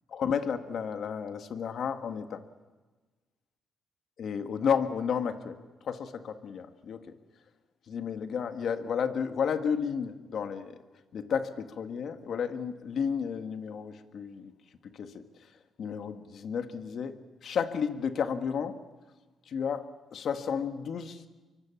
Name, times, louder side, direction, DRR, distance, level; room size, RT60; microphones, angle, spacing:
voice 1, 0.1-2.4 4.2-5.5 5.8-7.0 7.9-10.7 11.1-14.5 14.9-15.2 15.8-17.1 17.4-18.8 19.5-19.8 20.1-21.3, left 7 dB, 60° left, 9 dB, 1.7 m, -32 dB
24.0 x 23.5 x 7.2 m, 1.3 s
cardioid pair, 90°, 0 cm